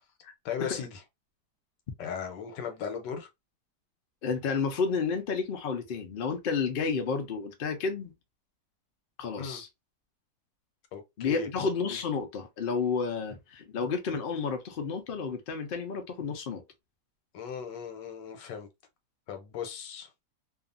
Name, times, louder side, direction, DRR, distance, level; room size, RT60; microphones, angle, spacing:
voice 1, 0.4-1.0 2.0-3.3 9.4-9.6 10.9-11.5 17.3-18.7 19.3-20.1, left 7 dB, 90° left, 1.3 m, -37 dB
voice 2, 4.2-8.1 9.2-9.7 11.2-16.6, left 5 dB, 70° left, 0.5 m, -31 dB
2.7 x 2.4 x 2.4 m
omnidirectional pair, 1.8 m